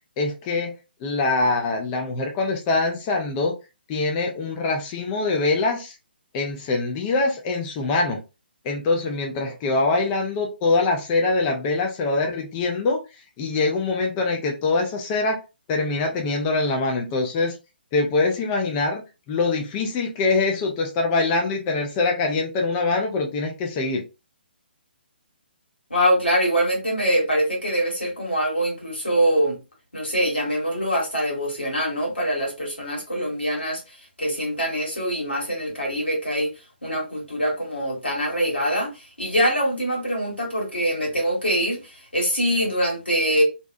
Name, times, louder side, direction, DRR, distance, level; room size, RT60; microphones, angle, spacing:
voice 1, 0.2-0.7 1.0-3.5 3.9-6.0 6.3-8.2 8.6-13.0 13.4-15.4 15.7-17.6 17.9-19.0 19.3-24.0, left 3 dB, 20° left, 0.4 m, -23 dB
voice 2, 25.9-29.6 29.9-36.5 36.8-43.4, equal, 80° left, 1.5 m, -24 dB
2.7 x 2.1 x 2.5 m
figure-of-eight pair, 135°, 6 cm